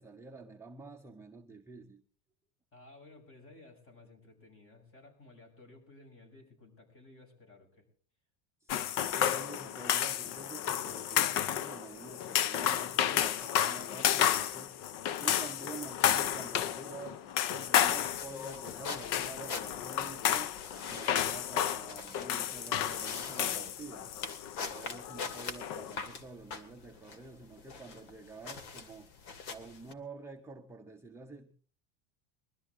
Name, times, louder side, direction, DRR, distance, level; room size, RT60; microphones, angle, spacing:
voice 1, 0.0-2.0 8.6-14.7 15.2-20.6 20.9-24.1 24.7-29.1 29.5-31.5, right 4 dB, 5° right, 0.8 m, -48 dB
voice 2, 2.7-7.9, left 2 dB, 30° left, 7.0 m, -56 dB
sound 1, 8.7-25.9, left 10 dB, 50° left, 0.7 m, -32 dB
sound 2, 18.1-29.9, left 5 dB, 70° left, 2.7 m, -44 dB
23.5 x 13.0 x 3.7 m
supercardioid pair, 145°, 42 cm